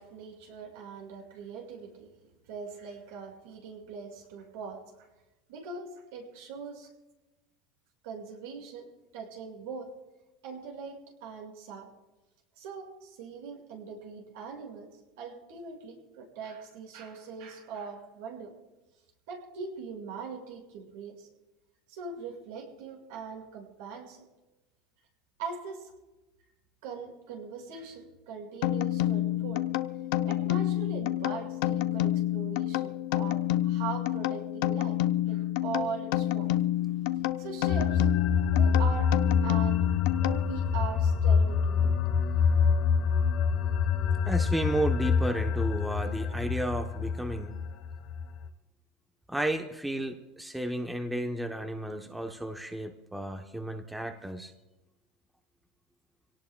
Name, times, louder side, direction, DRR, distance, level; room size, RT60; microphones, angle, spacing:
voice 1, 0.0-2.1 2.5-4.8 5.5-6.9 8.0-8.9 9.1-9.9 10.4-11.9 12.6-14.9 15.2-18.5 19.3-21.3 21.9-24.2 25.4-25.9 26.8-29.7 30.2-35.0 35.3-36.5 37.4-38.1 38.3-39.1 39.4-39.9 40.2-41.9, right 5 dB, 75° right, 1 dB, 5.6 m, -41 dB
sound 1, 28.6-40.8, left 14 dB, 70° left, 0.6 m, -29 dB
sound 2, 37.7-48.5, left 6 dB, 45° left, 1.3 m, -26 dB
voice 2, 44.2-47.6 49.3-54.5, right 1 dB, 5° right, 4 dB, 0.8 m, -33 dB
26.5 x 18.0 x 2.3 m, 1.1 s
supercardioid pair, 155°, 0 cm